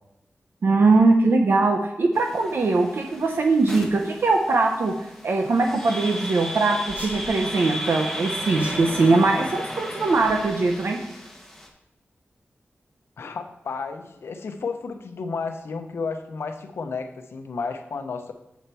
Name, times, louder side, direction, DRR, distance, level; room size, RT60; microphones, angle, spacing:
voice 1, 0.6-4.9 5.2-11.0, right 3 dB, 65° right, 3 dB, 0.7 m, -21 dB
sound 1, 2.1-11.7, equal, 5° left, 1.3 m, -35 dB
sound 2, 6.9-7.3 8.6-9.0 10.1-10.7, equal, 40° right, 2.8 m, -42 dB
voice 2, 13.2-18.3, left 4 dB, 85° left, 6 dB, 0.8 m, -32 dB
7.2 x 4.3 x 6.8 m, 0.92 s
wide cardioid pair, 110°, 4 cm